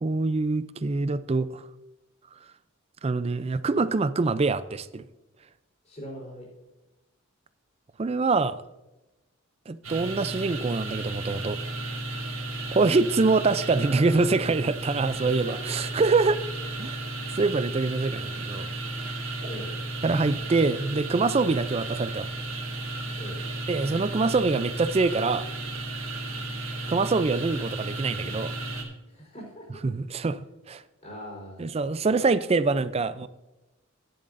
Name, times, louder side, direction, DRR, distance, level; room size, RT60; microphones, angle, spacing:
voice 1, 0.0-1.7 3.0-5.1 8.0-8.6 9.7-11.6 12.7-16.4 16.8-17.0 17.3-18.7 20.0-22.3 23.7-25.5 26.9-28.5 29.8-30.8 31.6-33.3, right 3 dB, 30° right, 14 dB, 0.4 m, -25 dB
voice 2, 5.9-6.5 15.4-15.8 19.4-19.7 23.2-23.4 29.1-29.7 31.0-31.7 32.0-32.2, equal, 35° left, -2 dB, 4.2 m, -41 dB
sound 1, 9.8-28.8, right 2 dB, 85° right, 2.1 m, -34 dB
14.0 x 10.5 x 2.6 m, 1.0 s
head